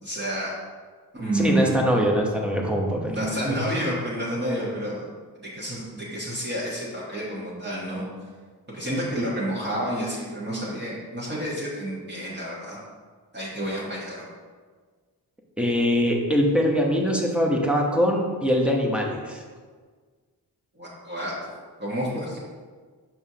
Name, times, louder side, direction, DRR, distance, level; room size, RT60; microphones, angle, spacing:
voice 1, 0.0-0.5 1.1-1.7 3.1-5.0 5.4-8.1 8.7-12.8 13.3-14.2 20.8-21.3 21.8-22.4, right 1 dB, 25° right, -7 dB, 1.2 m, -29 dB
voice 2, 1.3-3.2 15.6-19.4, equal, 5° right, -1 dB, 0.8 m, -22 dB
7.1 x 6.0 x 2.8 m, 1.5 s
wide cardioid pair, 140°, 40 cm